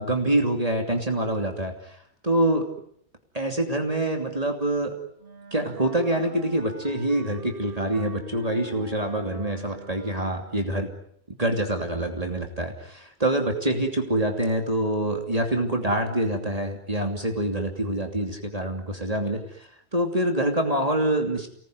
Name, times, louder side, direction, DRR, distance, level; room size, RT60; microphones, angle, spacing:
voice 1, 0.0-2.0 2.2-2.7 3.3-5.0 5.5-10.9 11.4-21.5, right 1 dB, 35° right, 3 dB, 2.9 m, -26 dB
Wind instrument woodwind instrument, 5.2-10.6, right 2 dB, 55° right, 2.3 m, -44 dB
29.5 x 19.5 x 9.6 m, 0.70 s
omnidirectional pair, 1.1 m